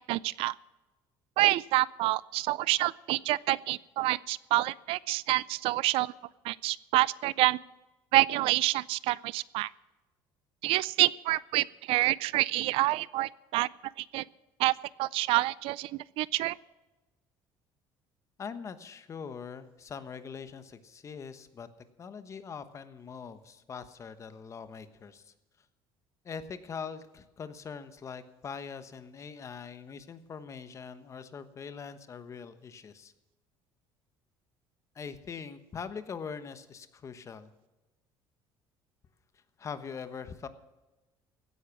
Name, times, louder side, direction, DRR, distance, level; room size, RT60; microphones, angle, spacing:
voice 1, 0.1-0.5 1.4-6.1 6.5-7.6 8.1-9.7 10.6-13.7 14.1-14.2 14.6-14.7 15.0-15.9 16.2-16.5, right 18 dB, 70° right, 21 dB, 0.4 m, -27 dB
voice 2, 18.4-21.7 22.0-25.3 26.2-33.1 34.9-37.5 39.6-40.5, left 6 dB, 30° left, 11 dB, 1.1 m, -42 dB
16.0 x 9.8 x 6.2 m, 1.1 s
cardioid pair, 135°, 10 cm